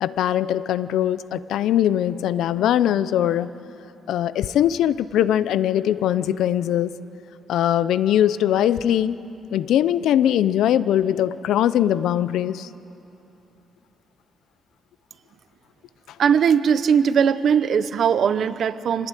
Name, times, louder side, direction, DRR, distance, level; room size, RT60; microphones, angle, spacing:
voice 1, 0.0-3.5 4.1-6.9 7.5-9.2 9.5-12.7, left 11 dB, 80° left, 16 dB, 0.6 m, -21 dB
voice 2, 16.2-19.1, right 7 dB, 50° right, 13 dB, 0.8 m, -19 dB
25.5 x 18.0 x 9.1 m, 3.0 s
cardioid pair, 170°, 0 cm